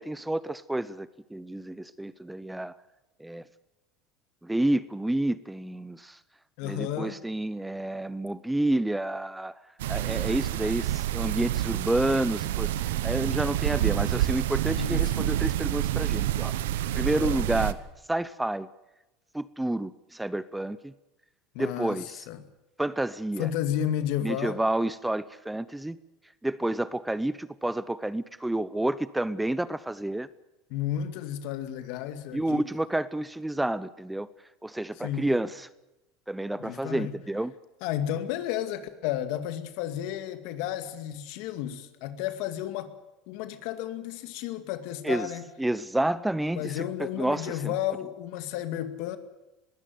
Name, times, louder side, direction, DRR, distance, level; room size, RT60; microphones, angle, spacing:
voice 1, 0.0-2.7 3.2-3.4 4.4-6.2 6.6-9.5 9.9-16.5 16.9-17.8 18.1-18.7 19.3-20.9 21.6-22.2 22.8-23.5 24.2-26.0 26.4-30.3 32.3-34.3 34.6-35.7 36.3-37.5 45.0-45.3 45.6-47.7, right 1 dB, 5° right, 0.7 m, -29 dB
voice 2, 6.6-7.2 14.8-15.1 17.2-17.4 21.5-22.5 23.4-24.6 30.7-32.6 35.0-35.3 36.6-37.1 37.8-42.9 43.3-45.4 46.6-49.2, left 11 dB, 70° left, 2.2 m, -32 dB
sound 1, 9.8-17.7, right 13 dB, 85° right, 1.0 m, -28 dB
21.5 x 16.5 x 9.4 m
supercardioid pair, 100°, 0 cm